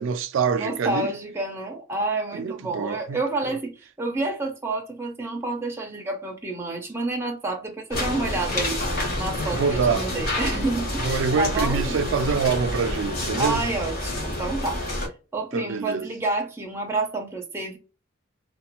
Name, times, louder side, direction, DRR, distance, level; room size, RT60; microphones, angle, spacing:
voice 1, 0.0-1.1 2.3-3.6 9.5-10.1 11.0-13.6 15.5-16.1, right 5 dB, 75° right, 0.3 m, -26 dB
voice 2, 0.6-12.1 13.4-14.8 15.3-17.8, right 2 dB, 10° right, 0.5 m, -29 dB
sound 1, 7.9-15.1, left 1 dB, 50° left, 0.9 m, -28 dB
2.4 x 2.1 x 2.9 m
head